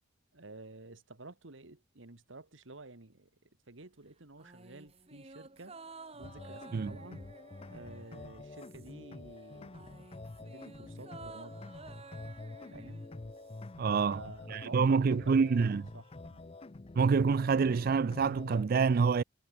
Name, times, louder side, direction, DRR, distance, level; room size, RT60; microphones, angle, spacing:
voice 1, 0.3-3.3 3.7-5.8 6.1-7.3 7.7-10.0 10.4-11.6 12.7-13.0 13.8-16.5, right 3 dB, 70° right, 1.9 m, -51 dB
sound 1, 4.4-9.1 9.4-13.7 14.0-14.1, right 3 dB, 30° right, 4.2 m, -53 dB
sound 2, 6.2-18.6, left 2 dB, 30° left, 0.6 m, -47 dB
voice 2, 13.8-14.2 14.5-15.8 17.0-19.2, right 5 dB, 50° right, 0.4 m, -27 dB
head